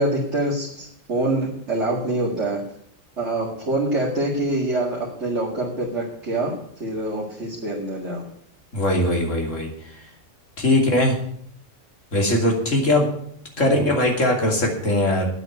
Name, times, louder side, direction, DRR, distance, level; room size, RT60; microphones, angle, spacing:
voice 1, 0.0-2.6 3.2-8.2, right 1 dB, 65° right, -4 dB, 2.5 m, -25 dB
voice 2, 8.7-10.1 10.6-11.1 12.1-13.1 13.6-15.2, left 1 dB, 80° left, 1 dB, 3.2 m, -20 dB
10.0 x 8.1 x 8.1 m, 0.65 s
omnidirectional pair, 1.3 m